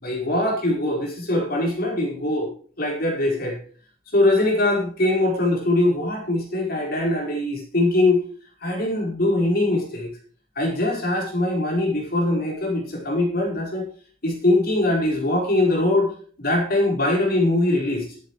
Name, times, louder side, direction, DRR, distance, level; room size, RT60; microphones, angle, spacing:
voice 1, 0.0-2.5 2.8-3.6 4.1-8.2 8.6-10.1 10.6-13.8 14.2-16.1 16.4-18.1, left 1 dB, 50° left, 1 dB, 4.8 m, -22 dB
12.0 x 10.5 x 4.9 m, 0.43 s
head